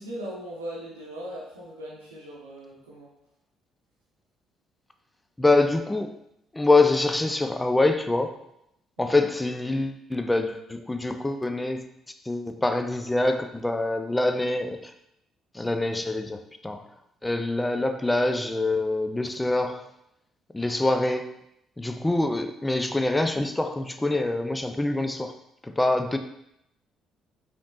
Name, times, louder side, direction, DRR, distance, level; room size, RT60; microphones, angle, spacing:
voice 1, 0.0-3.1 9.0-9.3, equal, 80° right, -5 dB, 0.7 m, -39 dB
voice 2, 5.4-6.1 6.5-8.3 9.0-11.8 12.3-14.9 15.5-16.9 17.2-19.9 20.5-21.3 21.8-25.3 25.6-26.2, left 2 dB, 15° left, 8 dB, 0.4 m, -25 dB
5.0 x 3.0 x 2.5 m, 0.79 s
figure-of-eight pair, 45°, 0 cm